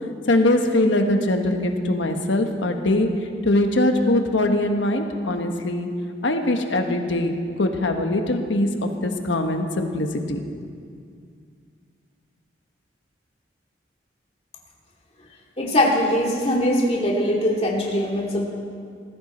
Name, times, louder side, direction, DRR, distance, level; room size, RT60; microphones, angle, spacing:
voice 1, 0.3-3.1 3.4-5.9 6.2-10.4, left 1 dB, 90° left, 5 dB, 1.4 m, -22 dB
voice 2, 15.6-18.5, left 1 dB, 30° left, -2 dB, 2.4 m, -21 dB
19.5 x 15.0 x 4.4 m, 2.2 s
head